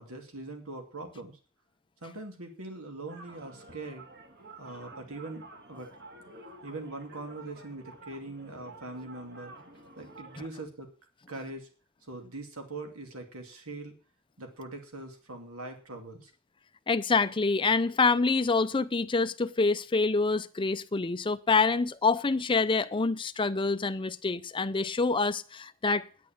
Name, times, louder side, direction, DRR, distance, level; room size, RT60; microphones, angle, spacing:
voice 1, 0.0-1.4 2.0-4.1 4.6-5.9 6.6-9.5 10.0-10.9 11.3-11.7 12.1-13.9 14.4-16.3, right 2 dB, 75° right, 2.5 m, -42 dB
sound 1, 3.1-10.4, right 2 dB, 50° right, 2.3 m, -50 dB
voice 2, 16.9-26.1, left 4 dB, 25° left, 0.5 m, -26 dB
9.5 x 8.6 x 7.4 m
head